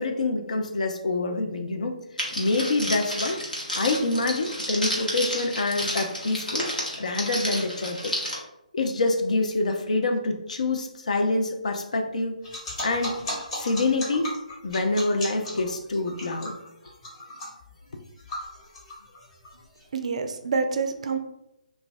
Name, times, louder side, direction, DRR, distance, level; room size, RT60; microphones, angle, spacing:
voice 1, 0.0-2.0 2.3-3.4 3.7-6.7 7.0-8.1 8.7-12.4 12.8-13.2 13.5-14.3 14.6-16.6, left 2 dB, 60° left, 5 dB, 0.5 m, -26 dB
Crackle, 2.2-8.3, equal, 85° left, 1.1 m, -31 dB
sound 1, 12.4-19.8, left 1 dB, 45° left, 1.2 m, -36 dB
voice 2, 19.9-21.2, right 4 dB, 50° right, 7 dB, 0.4 m, -27 dB
2.4 x 2.2 x 3.9 m, 0.86 s
figure-of-eight pair, 140°, 4 cm